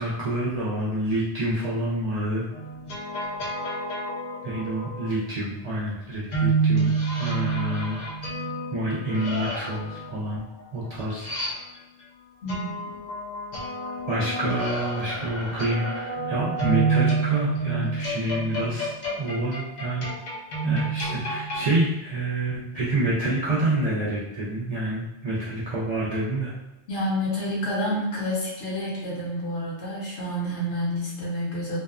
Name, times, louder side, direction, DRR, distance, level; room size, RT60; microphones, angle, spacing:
voice 1, 0.0-2.5 4.4-6.9 7.2-8.2 8.7-10.4 10.7-11.3 14.1-20.1 20.6-26.5, right 1 dB, 50° right, -8 dB, 0.4 m, -27 dB
sound 1, 2.5-5.1 6.3-12.0 12.5-21.7, right 3 dB, 50° left, 0.6 m, -29 dB
voice 2, 12.4-12.9 26.9-31.8, equal, 70° left, -5 dB, 1.0 m, -29 dB
2.6 x 2.1 x 2.3 m, 0.97 s
omnidirectional pair, 1.1 m